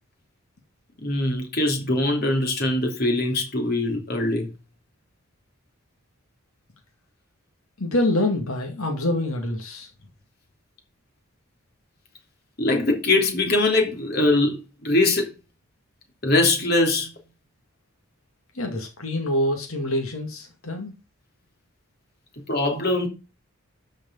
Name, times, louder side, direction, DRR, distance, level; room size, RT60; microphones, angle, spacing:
voice 1, 1.0-4.5 12.6-15.3 16.2-17.1 22.5-23.1, left 2 dB, 45° left, 3.1 m, -22 dB
voice 2, 7.8-9.9 18.5-20.9, left 1 dB, 80° left, 2.3 m, -26 dB
12.5 x 5.4 x 5.5 m
head